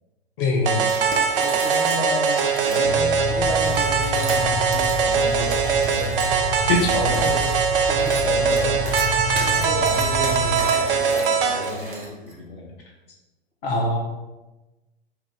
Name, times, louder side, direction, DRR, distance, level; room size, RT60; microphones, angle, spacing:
voice 1, 0.4-0.9 6.7-7.1 13.6-14.0, left 2 dB, 60° left, -1 dB, 0.9 m, -22 dB
sound 1, 0.7-11.7, right 6 dB, 55° right, 0.5 m, -22 dB
sound 2, 0.8-2.9 3.4-12.3, right 2 dB, 25° right, 0.8 m, -35 dB
voice 2, 1.3-6.2 6.5-8.8 9.1-12.7, left 1 dB, 35° left, -3 dB, 1.3 m, -33 dB
sound 3, 2.8-10.6, left 1 dB, 10° left, 0.7 m, -29 dB
4.7 x 2.4 x 3.6 m, 1.1 s
figure-of-eight pair, 100°, 32 cm